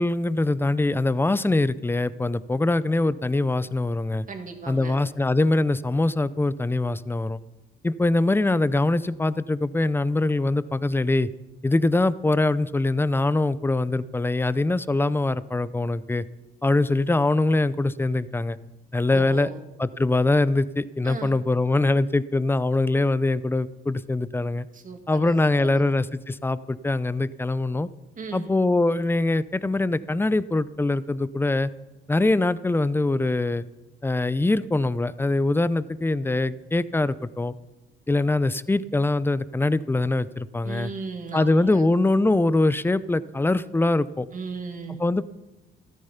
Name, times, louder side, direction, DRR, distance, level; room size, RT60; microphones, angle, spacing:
voice 1, 0.0-4.3 4.7-7.4 7.8-11.3 11.6-16.2 16.6-18.6 18.9-19.5 19.8-24.7 25.1-27.9 28.3-31.7 32.1-33.6 34.0-37.5 38.1-40.9 41.3-44.3 45.0-45.2, left 2 dB, 10° left, 17 dB, 0.5 m, -23 dB
voice 2, 4.3-5.0 19.1-19.6 21.0-21.3 24.7-25.9 28.2-28.5 40.6-41.8 44.3-45.0, right 4 dB, 40° right, 4 dB, 2.3 m, -37 dB
13.5 x 13.0 x 5.7 m, 1.1 s
cardioid pair, 90°, 20 cm